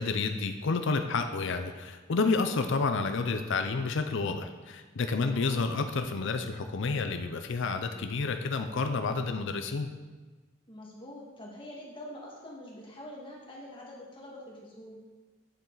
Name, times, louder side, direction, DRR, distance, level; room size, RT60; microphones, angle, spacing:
voice 1, 0.0-9.9, left 4 dB, 65° left, 7 dB, 0.6 m, -30 dB
voice 2, 5.3-5.7 10.7-15.0, left 1 dB, 25° left, -3 dB, 2.0 m, -45 dB
9.2 x 7.3 x 3.9 m, 1.3 s
head